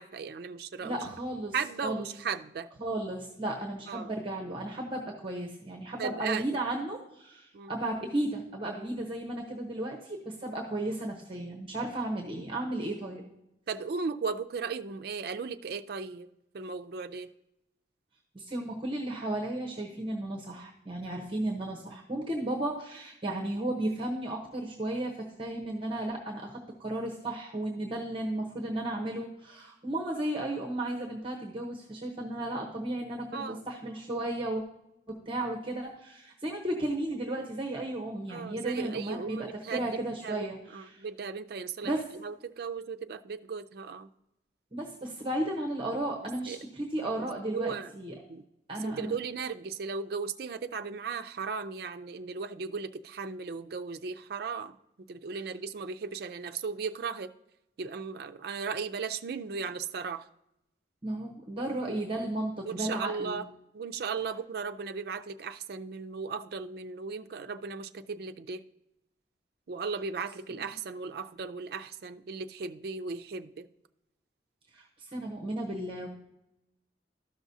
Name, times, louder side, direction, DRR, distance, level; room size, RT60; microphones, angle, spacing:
voice 1, 0.0-1.0 1.5-2.7 3.9-4.1 6.0-6.4 7.5-7.7 13.7-16.3 16.5-17.3 33.3-33.6 35.5-35.6 38.3-39.8 40.2-41.9 42.2-44.1 46.5-46.6 47.2-47.9 48.3-48.4 48.8-54.8 55.1-57.3 57.8-60.3 62.7-63.5 63.7-68.6 69.7-73.7, right 5 dB, 60° right, 0.4 m, -36 dB
voice 2, 0.8-1.6 1.8-2.1 2.8-13.2 18.3-34.6 35.1-41.0 41.8-42.0 44.7-48.1 48.7-49.2 61.0-63.4 70.5-70.7 74.7-76.1, right 1 dB, 30° right, 0.9 m, -34 dB
13.0 x 6.0 x 2.7 m
head